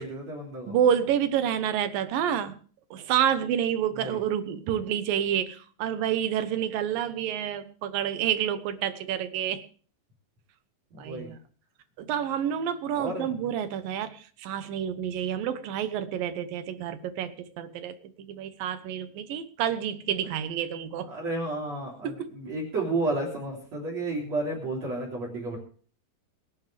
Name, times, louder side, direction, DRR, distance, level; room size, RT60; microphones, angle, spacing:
voice 1, 0.0-0.7 3.9-4.2 10.9-11.3 13.0-13.5 21.1-25.6, right 2 dB, 40° right, 0 dB, 4.2 m, -32 dB
voice 2, 0.7-2.6 2.9-9.6 11.0-11.4 12.0-17.9 18.3-21.1 22.0-22.1, right 9 dB, 70° right, 11 dB, 2.4 m, -28 dB
24.5 x 10.5 x 3.4 m, 0.43 s
omnidirectional pair, 4.8 m